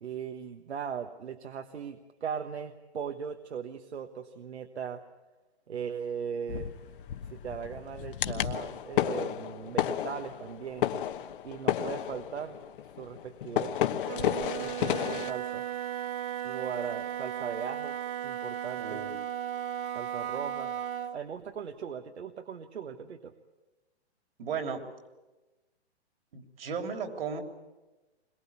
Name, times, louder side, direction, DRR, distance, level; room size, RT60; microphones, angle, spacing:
voice 1, 0.0-5.0 5.7-6.8 7.3-10.9 11.4-12.6 13.0-13.7 14.6-15.6 16.4-18.0 18.2-19.0 19.9-20.7 21.1-23.3, right 7 dB, 75° right, 6 dB, 1.5 m, -38 dB
sound 1, 6.5-15.3, left 11 dB, 50° left, 1.2 m, -32 dB
Wind instrument woodwind instrument, 14.0-21.2, right 10 dB, 25° right, 1.0 m, -36 dB
voice 2, 18.8-19.2 24.4-24.8 26.3-27.4, right 6 dB, 60° right, 5 dB, 3.5 m, -35 dB
22.0 x 21.5 x 8.5 m, 1.1 s
hypercardioid pair, 140°, 33 cm